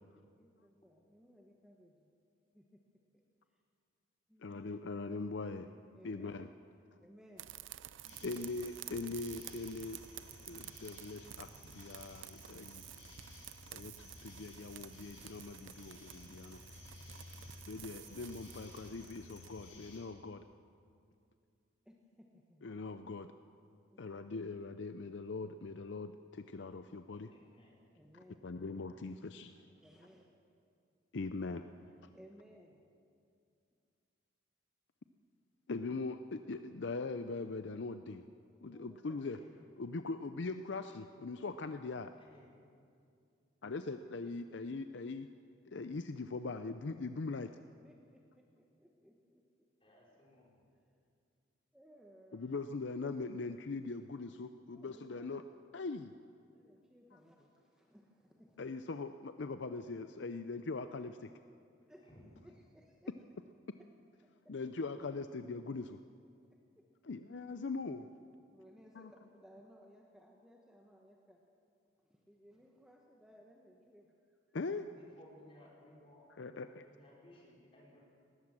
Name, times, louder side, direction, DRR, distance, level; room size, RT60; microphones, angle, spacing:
voice 1, 0.4-2.1 2.5-2.8 3.5-3.6 4.3-4.6 5.9-6.4 7.0-7.5 8.0-8.3 21.8-22.7 23.9-24.0 27.9-28.5 29.8-30.3 32.1-32.8 38.7-39.2 44.2-44.3 44.7-44.8 47.3-47.4 47.8-49.7 51.7-52.5 54.7-55.3 56.5-58.7 61.9-62.1 62.4-63.1 63.8-63.9 64.2-64.5 66.5-66.8 68.5-71.5 72.0-74.4, equal, 5° right, 0 dB, 1.2 m, -61 dB
voice 2, 4.4-5.7 6.0-6.5 8.2-10.0 10.5-12.8 13.7-16.6 17.7-20.4 22.6-23.3 24.0-27.3 28.4-29.6 31.1-31.7 35.7-38.3 38.6-39.4 39.8-42.1 43.6-45.3 45.7-47.5 52.3-55.4 55.7-56.1 58.6-61.3 64.5-66.0 67.1-68.1 69.0-69.1 74.5-74.9 76.4-76.8, left 3 dB, 60° left, 10 dB, 0.5 m, -41 dB
sound 1, 7.4-19.7, right 12 dB, 70° right, 0.5 m, -52 dB
sound 2, 8.0-20.0, left 2 dB, 80° left, 6.2 m, -55 dB
voice 3, 27.3-27.8 29.4-29.7 31.6-31.9 39.2-39.5 42.2-42.5 49.8-50.6 62.0-62.3 74.9-76.2 76.8-78.0, left 1 dB, 25° left, -4 dB, 4.8 m, -61 dB
19.5 x 18.0 x 7.4 m, 2.4 s
head